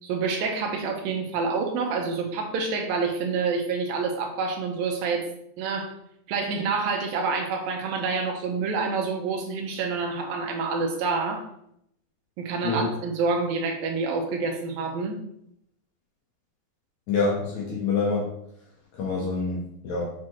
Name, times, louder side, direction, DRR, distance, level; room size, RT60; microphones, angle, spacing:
voice 1, 0.0-5.3 5.6-5.9 6.3-11.5 12.4-15.2, right 4 dB, 70° right, 2 dB, 2.6 m, -27 dB
voice 2, 17.1-18.3 18.9-20.1, left 4 dB, 65° left, -3 dB, 1.9 m, -26 dB
7.4 x 6.3 x 3.0 m, 0.72 s
omnidirectional pair, 4.6 m